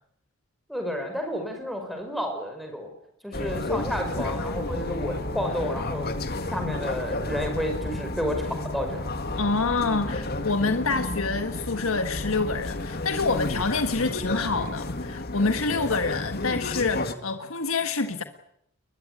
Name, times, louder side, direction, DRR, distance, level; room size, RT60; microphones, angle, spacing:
voice 1, 0.7-2.9 3.2-6.1 6.5-9.1, equal, ahead, 5.6 m, -31 dB
sound 1, 3.3-17.1, left 2 dB, 45° left, 1.9 m, -31 dB
voice 2, 9.4-18.2, left 3 dB, 80° left, 1.5 m, -27 dB
22.0 x 21.5 x 9.7 m
head